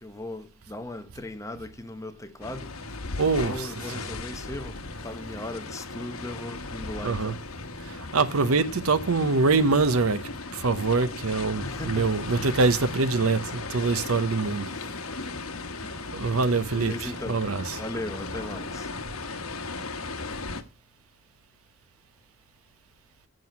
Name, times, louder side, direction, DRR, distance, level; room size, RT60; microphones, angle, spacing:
voice 1, 0.0-2.7 3.4-7.4 11.6-12.1 14.8-14.9 15.8-16.1 16.7-18.9, left 1 dB, 15° left, 0.9 m, -38 dB
sound 1, 2.4-20.6, left 3 dB, 75° left, 1.2 m, -36 dB
voice 2, 3.2-4.2 7.0-7.4 7.8-14.7 15.2-15.3 15.8-17.8, right 3 dB, 80° right, 0.9 m, -25 dB
7.7 x 7.6 x 8.5 m
head